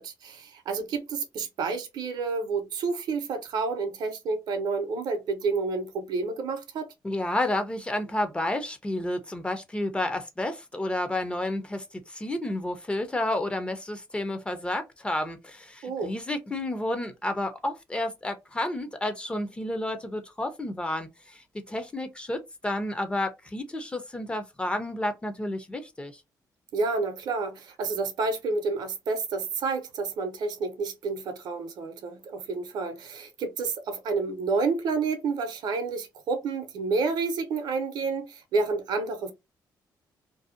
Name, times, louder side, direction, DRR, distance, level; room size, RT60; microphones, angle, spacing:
voice 1, 0.0-6.9 15.8-16.1 26.7-39.3, right 4 dB, 70° right, 0.6 m, -29 dB
voice 2, 7.0-26.2, left 1 dB, 15° left, 0.4 m, -31 dB
2.6 x 2.0 x 2.4 m
cardioid pair, 125°, 7 cm